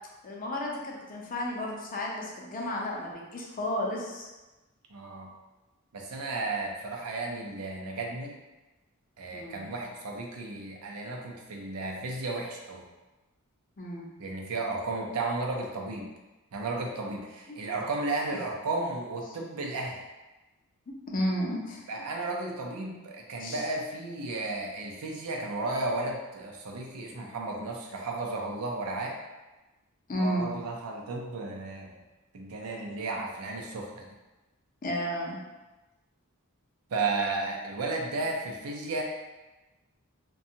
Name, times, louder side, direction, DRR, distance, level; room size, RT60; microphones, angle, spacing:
voice 1, 0.2-4.3 9.3-9.6 13.8-14.1 21.1-21.9 23.4-23.6 30.1-30.6 34.8-35.4, equal, 40° left, -2 dB, 0.5 m, -32 dB
voice 2, 4.9-5.3 5.9-8.3 9.2-12.9 14.2-16.1 16.5-20.0 21.9-29.2 30.2-32.0 32.3-34.1 36.9-39.0, right 3 dB, 90° right, 0 dB, 0.5 m, -33 dB
2.6 x 2.2 x 2.7 m, 1.1 s
head